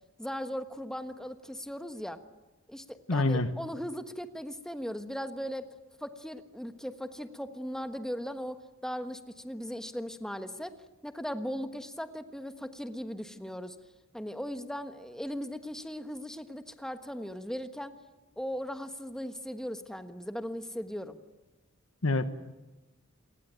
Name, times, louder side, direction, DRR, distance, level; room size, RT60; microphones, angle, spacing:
voice 1, 0.2-2.2 2.7-5.7 6.0-10.7 11.0-13.8 14.1-17.9 18.4-21.2, equal, 5° left, 8 dB, 1.4 m, -38 dB
voice 2, 3.1-3.5 22.0-22.3, left 2 dB, 90° left, 10 dB, 1.3 m, -26 dB
27.5 x 19.0 x 9.2 m, 1.0 s
head